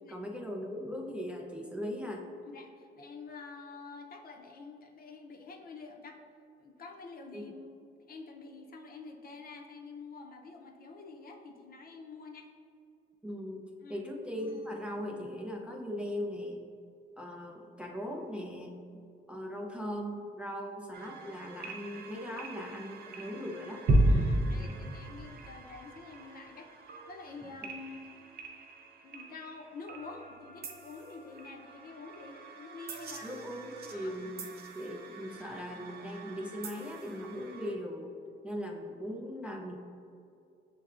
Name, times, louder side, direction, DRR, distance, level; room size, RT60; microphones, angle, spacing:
voice 1, 0.1-2.3 7.3-7.4 13.2-16.7 17.2-18.8 19.3-23.9 27.6-27.7 33.2-38.1 38.4-39.8, equal, 5° right, 0 dB, 0.4 m, -39 dB
voice 2, 2.4-6.2 6.6-12.5 13.8-14.1 22.4-22.6 24.0-28.1 29.0-33.4 33.8-34.1, left 4 dB, 50° left, 2 dB, 0.6 m, -48 dB
sound 1, 14.4-16.1, left 2 dB, 85° left, 0.7 m, -56 dB
sound 2, 20.9-37.7, right 1 dB, 55° right, 0.6 m, -36 dB
6.7 x 3.2 x 2.4 m, 2.5 s
cardioid pair, 90°, 20 cm